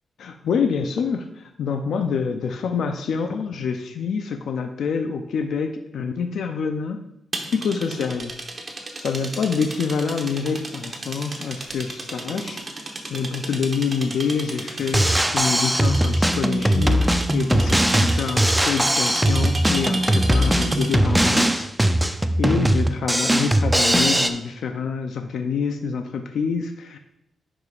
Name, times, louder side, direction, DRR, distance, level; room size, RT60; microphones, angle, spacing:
voice 1, 0.2-7.0 7.5-8.3 9.0-12.6 13.1-21.7 22.0-27.0, left 5 dB, 85° left, 6 dB, 0.5 m, -26 dB
sound 1, 7.3-21.1, right 2 dB, 35° right, 1.0 m, -33 dB
Drum kit, 14.8-24.3, right 1 dB, 5° right, 0.5 m, -20 dB
10.5 x 5.0 x 2.4 m, 0.80 s
cardioid pair, 95°, 0 cm